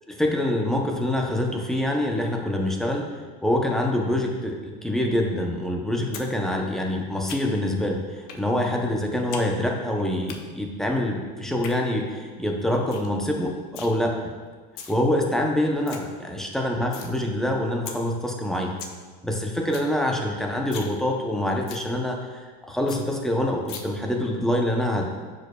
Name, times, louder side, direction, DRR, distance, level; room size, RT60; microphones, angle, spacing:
voice 1, 0.1-3.1 3.4-14.1 14.9-18.7 19.2-25.2, left 1 dB, ahead, 0 dB, 0.6 m, -25 dB
sound 1, 6.1-6.3 6.6-7.7 8.3-8.4 8.8-9.5 9.7-10.4 11.4-11.7 12.2-12.3 12.6-12.7 12.9-13.1 13.4-13.9 14.5-14.9 15.4-15.5 15.6-16.0 16.4-17.1 17.5-17.6 17.9-18.0 18.4-18.5 18.6-19.0 19.3-19.4 19.6-19.9 20.2-20.3 20.6-20.9 21.2-21.3 21.7-21.8 22.2-22.3 22.6-22.7 22.9-23.0 23.7-23.8, left 7 dB, 50° left, 0.7 m, -38 dB
10.5 x 5.2 x 2.2 m, 1.4 s
cardioid pair, 160°, 20 cm